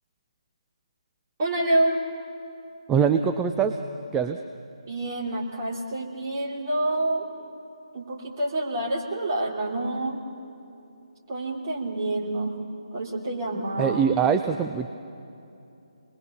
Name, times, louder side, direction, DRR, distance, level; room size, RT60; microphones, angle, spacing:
voice 1, 1.4-2.0 4.9-7.3 7.9-10.2 11.3-12.5 12.9-14.0, right 1 dB, 30° right, -2 dB, 2.9 m, -27 dB
voice 2, 2.9-3.8 4.1-4.4 13.8-14.9, right 7 dB, 10° right, 6 dB, 0.4 m, -23 dB
26.5 x 20.5 x 5.8 m, 2.7 s
figure-of-eight pair, 145°, 3 cm